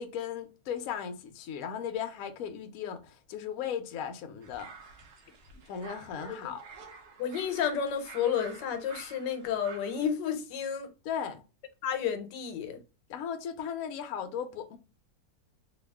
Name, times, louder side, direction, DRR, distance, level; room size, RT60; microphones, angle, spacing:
voice 1, 0.0-4.9 5.7-6.6 11.0-11.4 13.1-14.8, left 8 dB, 65° left, 0.9 m, -37 dB
sound 1, 4.4-10.1, right 4 dB, 65° right, 1.1 m, -49 dB
voice 2, 7.2-10.9 11.8-12.8, left 8 dB, 90° left, 1.3 m, -31 dB
2.9 x 2.7 x 3.3 m
omnidirectional pair, 1.9 m